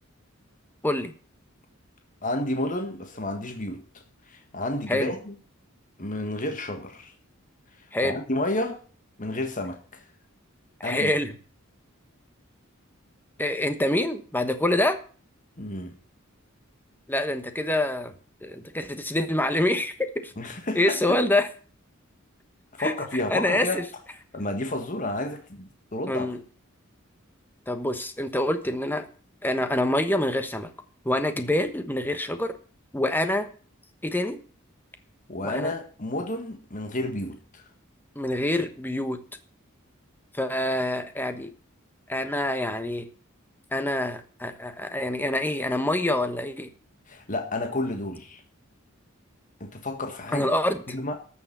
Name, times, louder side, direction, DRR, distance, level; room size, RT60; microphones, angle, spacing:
voice 1, 2.2-3.8 4.3-5.3 6.0-7.1 8.0-8.8 9.2-10.0 10.8-11.1 15.6-16.0 20.4-21.0 22.8-23.8 24.3-26.3 35.3-37.6 47.1-48.4 49.6-50.5 50.9-51.2, left 1 dB, 40° left, 5 dB, 1.7 m, -31 dB
voice 2, 10.8-11.3 13.4-15.0 17.1-18.1 18.4-20.3 20.7-21.5 22.8-23.8 26.1-26.4 27.7-29.1 29.4-30.7 31.0-32.5 32.9-33.5 34.0-34.4 35.4-35.7 38.1-39.2 40.3-41.5 42.1-43.1 43.7-46.7 50.3-50.8, left 1 dB, 10° left, 9 dB, 1.2 m, -26 dB
13.5 x 7.0 x 6.8 m, 0.40 s
head